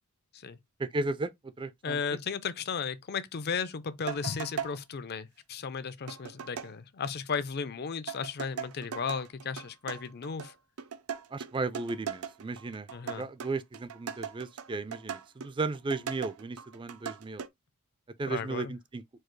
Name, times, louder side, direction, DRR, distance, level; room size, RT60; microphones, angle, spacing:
voice 1, 0.8-2.0 11.3-17.4 18.2-19.0, right 3 dB, 20° right, 0.4 m, -35 dB
voice 2, 1.8-10.5 12.9-13.3 18.3-18.7, left 5 dB, 45° left, 0.5 m, -35 dB
sound 1, 4.1-4.8 6.1-6.7 8.1-17.5, right 7 dB, 80° right, 0.6 m, -39 dB
4.7 x 2.4 x 4.5 m
head